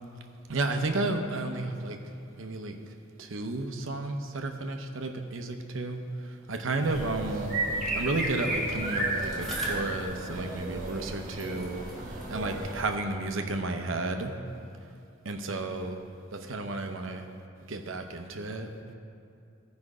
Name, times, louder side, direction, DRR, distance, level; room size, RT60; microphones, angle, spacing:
voice 1, 0.5-2.0 2.4-2.8 3.2-7.6 8.0-14.3 15.2-16.0 16.3-17.3 17.7-18.7, right 2 dB, 70° right, 5 dB, 0.8 m, -32 dB
sound 1, 6.8-12.8, right 1 dB, 40° right, 1.3 m, -33 dB
Bicycle, 8.8-11.1 11.4-13.8 14.5-14.6, right 1 dB, ahead, 1.7 m, -47 dB
14.5 x 5.2 x 4.9 m, 2.6 s
head